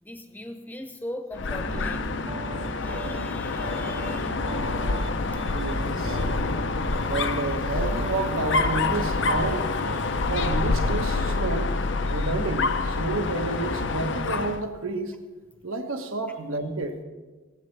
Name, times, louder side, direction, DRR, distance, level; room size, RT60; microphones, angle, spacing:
voice 1, 0.0-2.4 2.8-4.5 9.9-10.2 12.1-12.3, left 1 dB, 10° left, 5 dB, 0.8 m, -40 dB
Dog, 1.3-14.6, left 3 dB, 55° left, 0.6 m, -27 dB
Piano, 1.7-11.4, right 4 dB, 25° right, 0.4 m, -41 dB
voice 2, 5.4-6.2 7.1-9.7 10.2-11.7 12.1-15.2 15.6-17.0, right 2 dB, 75° right, 6 dB, 1.2 m, -30 dB
17.5 x 15.5 x 3.3 m, 1.3 s
head